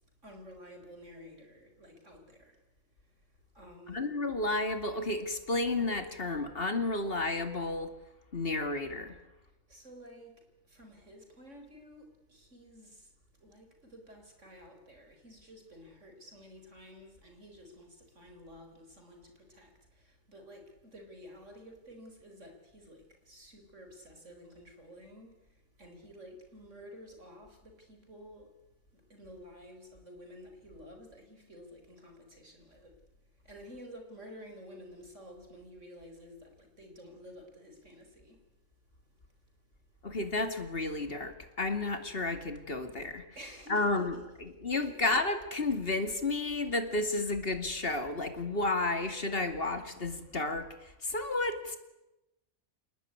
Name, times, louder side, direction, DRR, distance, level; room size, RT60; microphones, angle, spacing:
voice 1, 0.2-2.6 3.5-4.1 9.7-13.1 13.4-25.3 25.8-28.5 28.9-32.9 33.4-38.4 43.3-44.0 44.8-44.9, equal, 50° right, 4.9 m, -51 dB
voice 2, 3.9-7.9 8.3-9.2 40.0-51.8, left 2 dB, 40° left, 2.7 m, -32 dB
28.5 x 19.5 x 9.6 m
omnidirectional pair, 1.6 m